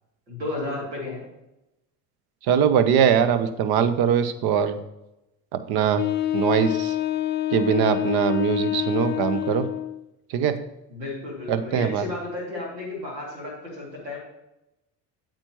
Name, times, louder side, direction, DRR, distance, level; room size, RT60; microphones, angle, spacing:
voice 1, 0.3-1.2 10.9-14.2, left 2 dB, 80° right, -1 dB, 2.8 m, -33 dB
voice 2, 2.5-4.8 5.5-6.0 6.3-6.9 7.5-9.7 10.3-10.6 11.5-12.0, right 8 dB, 50° right, 11 dB, 0.9 m, -21 dB
Wind instrument woodwind instrument, 6.0-10.1, left 12 dB, 25° left, 0.4 m, -27 dB
8.7 x 7.6 x 3.0 m, 0.93 s
figure-of-eight pair, 60°, 49 cm